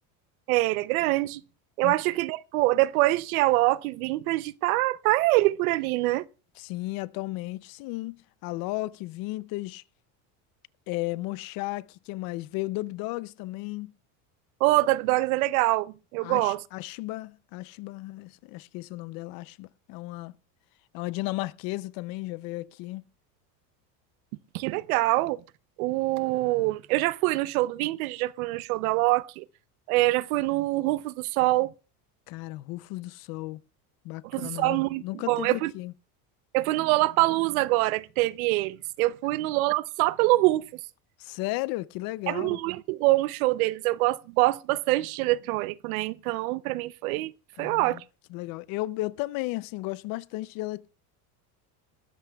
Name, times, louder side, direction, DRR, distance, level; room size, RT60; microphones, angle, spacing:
voice 1, 0.5-1.4 1.8-6.3 14.6-16.6 24.5-25.4 25.8-29.4 29.9-31.7 34.3-35.7 36.5-40.6 42.3-47.3 47.6-48.0, right 19 dB, 85° right, 0.7 m, -25 dB
voice 2, 6.6-9.8 10.9-13.9 16.2-20.3 20.9-23.0 32.3-33.6 34.0-35.9 41.2-42.6 47.6-48.0 48.3-50.9, left 19 dB, 55° left, 0.6 m, -34 dB
20.5 x 14.5 x 2.3 m
supercardioid pair, 135°, 42 cm